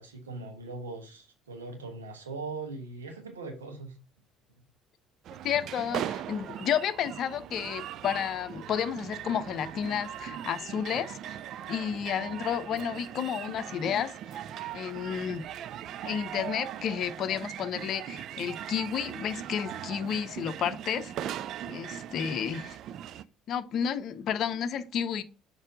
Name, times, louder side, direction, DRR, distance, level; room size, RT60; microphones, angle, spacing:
voice 1, 0.0-3.9, right 3 dB, 80° right, 1.3 m, -40 dB
sound 1, 5.2-23.2, right 11 dB, 55° right, 0.4 m, -39 dB
voice 2, 5.4-11.4 11.7-14.1 14.7-15.4 16.0-21.1 21.7-22.8 23.5-25.2, left 8 dB, 50° left, 0.6 m, -31 dB
6.5 x 4.8 x 3.7 m
figure-of-eight pair, 55°, 0 cm